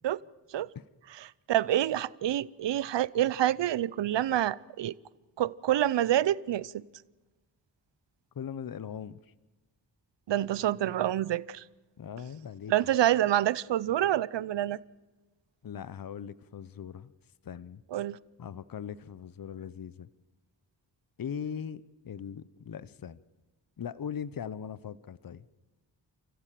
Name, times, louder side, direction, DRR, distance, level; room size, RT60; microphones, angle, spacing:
voice 1, 1.5-4.9 5.4-6.8 10.3-11.6 12.7-14.8 17.9-18.2, right 12 dB, 75° right, 0.7 m, -27 dB
voice 2, 8.3-9.2 12.0-12.7 15.6-17.1 17.4-17.8 18.4-20.1 21.2-23.2 23.8-25.5, left 8 dB, 50° left, 0.8 m, -40 dB
28.5 x 15.0 x 7.6 m
cardioid pair, 55°, 43 cm